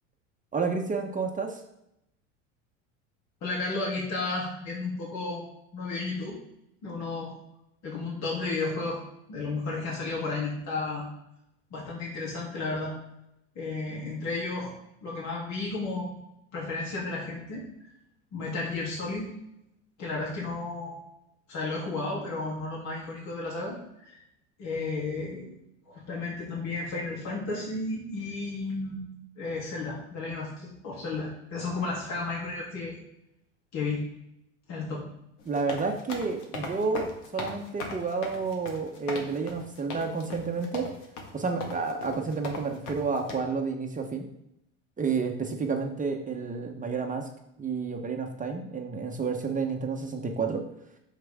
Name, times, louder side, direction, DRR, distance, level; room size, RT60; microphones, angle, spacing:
voice 1, 0.5-1.6 35.5-40.9 41.3-44.3 45.0-47.3 47.6-50.6, right 4 dB, 20° right, 3 dB, 1.0 m, -30 dB
voice 2, 3.4-5.4 5.7-6.4 6.8-7.3 7.8-9.0 9.3-11.0 11.7-12.9 13.5-14.7 15.0-16.1 16.5-17.7 18.3-19.3 20.0-21.0 21.5-23.7 24.0-24.2 24.6-25.5 25.9-29.0 29.4-33.0 33.7-34.0 34.7-35.0, left 3 dB, 50° left, -4 dB, 3.1 m, -33 dB
sound 1, 35.4-43.4, left 3 dB, 70° left, 2.0 m, -38 dB
7.7 x 6.6 x 3.6 m, 0.82 s
supercardioid pair, 100°, 36 cm